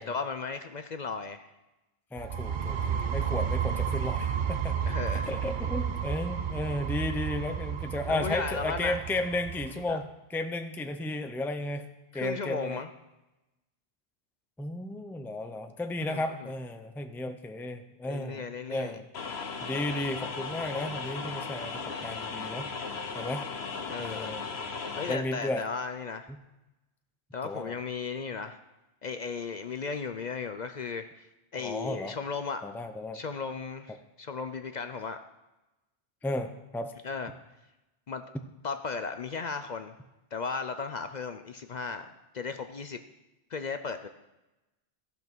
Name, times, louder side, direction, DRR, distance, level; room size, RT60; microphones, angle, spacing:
voice 1, 0.0-1.5 4.8-5.3 8.1-9.0 9.9-10.0 12.1-12.9 16.0-16.5 18.1-19.0 23.9-24.3 25.0-26.3 27.3-28.6 29.0-31.3 31.5-32.6 33.1-35.2 37.0-37.3 38.1-38.2 38.6-39.9 40.3-42.1 42.3-43.0 43.5-44.1, left 5 dB, 50° left, 8 dB, 0.6 m, -35 dB
voice 2, 2.1-4.8 5.1-11.9 12.1-12.8 14.6-18.4 18.7-19.0 19.6-22.7 23.2-23.4 24.0-24.5 25.1-25.6 27.4-27.7 31.6-32.2 32.6-33.2 36.2-36.9, left 2 dB, ahead, 7 dB, 0.5 m, -34 dB
sound 1, 2.2-9.8, right 8 dB, 55° right, 0.7 m, -32 dB
sound 2, 19.1-25.1, left 5 dB, 85° left, 1.2 m, -36 dB
14.5 x 5.4 x 6.1 m, 1.0 s
omnidirectional pair, 1.0 m